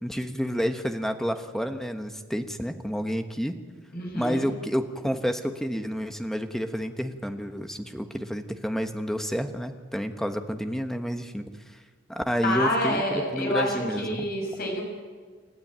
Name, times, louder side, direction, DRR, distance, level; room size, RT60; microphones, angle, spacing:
voice 1, 0.0-3.6 4.1-11.5 12.1-13.0 13.3-14.2, equal, ahead, 7 dB, 1.2 m, -29 dB
voice 2, 3.9-4.5 12.4-14.8, left 1 dB, 50° left, 0 dB, 6.7 m, -28 dB
29.0 x 13.0 x 9.0 m, 1.5 s
head